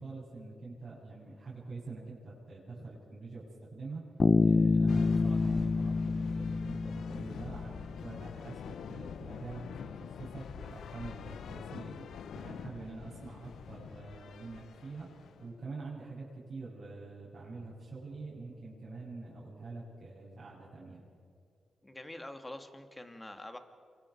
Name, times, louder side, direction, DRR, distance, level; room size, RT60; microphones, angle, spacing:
voice 1, 0.0-4.0 4.4-12.1 12.3-15.1 15.4-21.0, right 3 dB, 50° right, -8 dB, 7.6 m, -45 dB
Bass guitar, 4.2-8.0, left 3 dB, 45° left, 0.8 m, -27 dB
sound 1, 4.9-15.6, left 8 dB, 80° left, 0.7 m, -46 dB
voice 2, 21.8-23.6, left 1 dB, 20° left, 7 dB, 2.6 m, -45 dB
28.0 x 23.5 x 4.8 m, 2.3 s
supercardioid pair, 50°, 0 cm